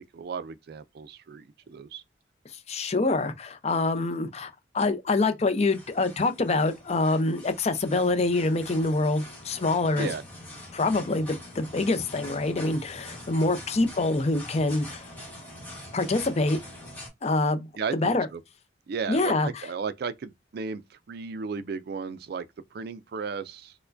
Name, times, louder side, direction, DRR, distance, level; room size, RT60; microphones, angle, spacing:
voice 1, 0.1-2.0 10.0-10.2 17.8-18.4 18.9-23.7, right 5 dB, 55° right, 0.3 m, -35 dB
voice 2, 2.7-10.1 10.7-15.1 15.9-16.6 17.2-18.3 19.1-19.7, left 2 dB, 35° left, 0.5 m, -25 dB
sound 1, 5.6-17.1, left 1 dB, 10° left, 1.2 m, -44 dB
4.5 x 2.1 x 2.5 m
head